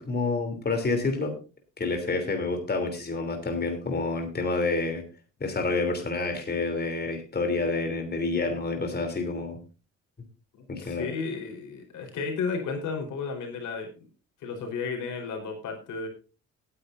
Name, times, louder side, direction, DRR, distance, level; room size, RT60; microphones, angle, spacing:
voice 1, 0.0-1.3 1.8-5.0 5.4-9.6 10.7-11.1, left 3 dB, 35° left, 5 dB, 3.2 m, -28 dB
voice 2, 10.6-14.1 14.4-16.1, left 5 dB, 80° left, 3 dB, 4.2 m, -33 dB
18.0 x 9.9 x 2.6 m, 0.34 s
cardioid pair, 90°, 30 cm